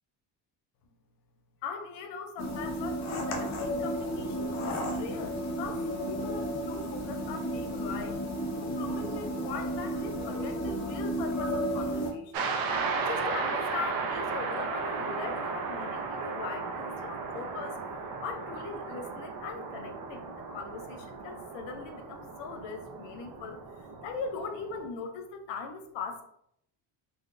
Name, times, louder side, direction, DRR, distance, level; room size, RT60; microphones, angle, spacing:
voice 1, 1.6-8.2 8.6-12.3 13.0-17.8 18.2-23.6 24.0-26.2, left 5 dB, 85° left, 5 dB, 0.6 m, -40 dB
sound 1, 2.4-12.1, equal, 40° left, 0.6 m, -33 dB
sound 2, 12.3-24.9, right 4 dB, 55° right, 0.5 m, -35 dB
3.9 x 2.0 x 2.5 m, 0.73 s
cardioid pair, 140°, 42 cm